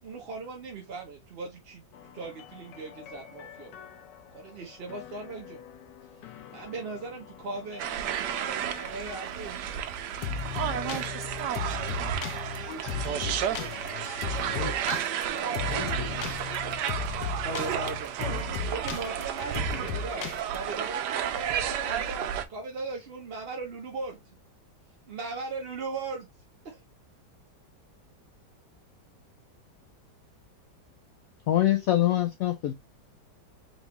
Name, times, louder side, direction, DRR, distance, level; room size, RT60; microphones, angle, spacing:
voice 1, 0.0-3.8 4.3-5.6 6.2-7.8 8.8-9.6 15.3-16.0 16.4-17.2 17.4-18.2 18.6-24.2 25.1-26.3 26.6-26.8, right 3 dB, 45° right, 0.8 m, -39 dB
sound 1, 1.9-20.6, left 7 dB, 85° left, 1.3 m, -37 dB
sound 2, 7.8-22.4, right 9 dB, 75° right, 1.2 m, -32 dB
voice 2, 12.6-15.0 15.6-16.4, left 4 dB, 50° left, 2.2 m, -41 dB
voice 3, 31.5-32.7, left 13 dB, 70° left, 0.9 m, -24 dB
3.9 x 3.5 x 2.9 m
omnidirectional pair, 1.9 m